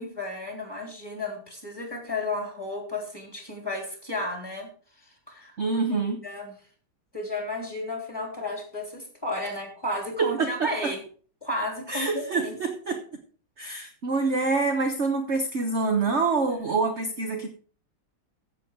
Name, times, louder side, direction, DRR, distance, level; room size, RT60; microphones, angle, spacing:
voice 1, 0.0-4.7 5.3-5.8 6.2-6.5 7.1-11.0 11.4-12.6, left 2 dB, 10° left, 2 dB, 3.3 m, -33 dB
voice 2, 5.6-6.2 10.2-10.9 11.9-13.0 13.6-17.5, right 4 dB, 40° right, 4 dB, 1.2 m, -26 dB
14.5 x 7.8 x 4.7 m, 0.42 s
omnidirectional pair, 2.2 m